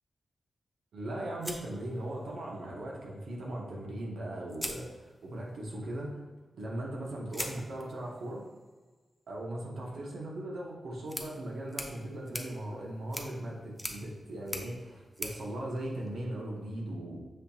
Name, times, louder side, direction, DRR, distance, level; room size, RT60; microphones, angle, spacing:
voice 1, 0.9-6.2 6.5-8.5 9.3-17.2, right 1 dB, 90° right, -2 dB, 1.0 m, -38 dB
sound 1, 1.4-2.6 3.9-4.0 4.5-5.5 7.3-16.5, equal, ahead, 0.4 m, -44 dB
6.4 x 2.8 x 2.7 m, 1.3 s
wide cardioid pair, 170°, 0 cm